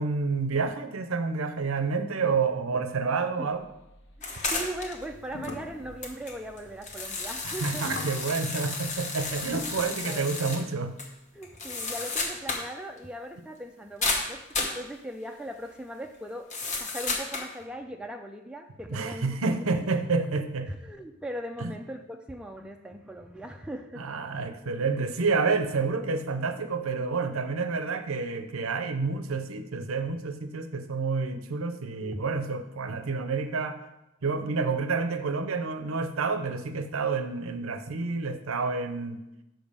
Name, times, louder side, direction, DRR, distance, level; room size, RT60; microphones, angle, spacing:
voice 1, 0.0-3.7 7.4-10.9 18.9-20.7 21.6-21.7 24.0-33.8 34.2-39.3, right 4 dB, 65° right, 9 dB, 0.7 m, -29 dB
sound 1, 3.5-10.1, left 1 dB, 55° left, 0.9 m, -44 dB
sound 2, 4.2-5.0 5.4-5.5 6.0-10.6 11.0-11.1 11.4-12.7 13.0-13.1 14.0-14.8 16.5-17.5, left 3 dB, 35° left, 1.0 m, -32 dB
voice 2, 4.2-8.1 9.4-9.6 10.0-10.5 11.3-16.5 16.8-19.9 20.7-24.0 24.3-24.5 32.0-32.2, right 1 dB, 5° right, 3 dB, 0.4 m, -39 dB
6.0 x 5.2 x 6.7 m, 0.93 s
head